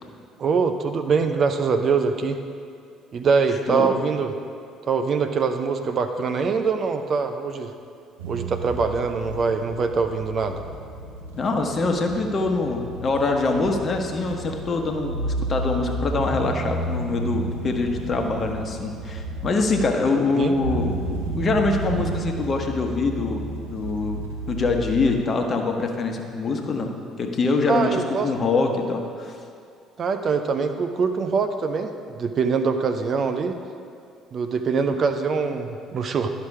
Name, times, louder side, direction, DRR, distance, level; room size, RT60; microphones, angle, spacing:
voice 1, 0.4-2.4 3.1-4.3 4.8-7.7 8.3-10.6 20.3-20.5 27.7-28.3 30.0-33.6 34.3-36.3, right 5 dB, 45° right, 7 dB, 0.6 m, -23 dB
sound 1, 8.2-25.2, right 2 dB, 80° right, 0.9 m, -32 dB
voice 2, 11.3-20.9 21.3-26.9 27.2-29.4, left 3 dB, 40° left, 3 dB, 1.1 m, -24 dB
11.5 x 5.9 x 4.8 m, 2.4 s
figure-of-eight pair, 50°, 0 cm